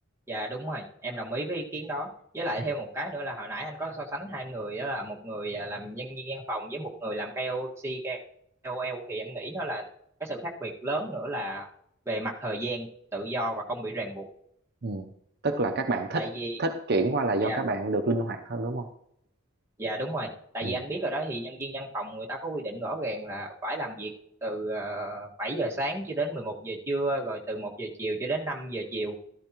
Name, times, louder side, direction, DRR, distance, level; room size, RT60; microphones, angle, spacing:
voice 1, 0.3-2.1 2.3-8.2 8.6-9.9 10.2-11.7 12.1-14.3 16.1-16.6 17.4-17.6 19.8-24.1 24.4-29.2, right 1 dB, 15° right, -3 dB, 1.8 m, -33 dB
voice 2, 15.4-16.3 16.6-18.9 20.6-20.8, right 2 dB, 55° right, 4 dB, 0.7 m, -28 dB
14.0 x 13.0 x 3.0 m, 0.74 s
head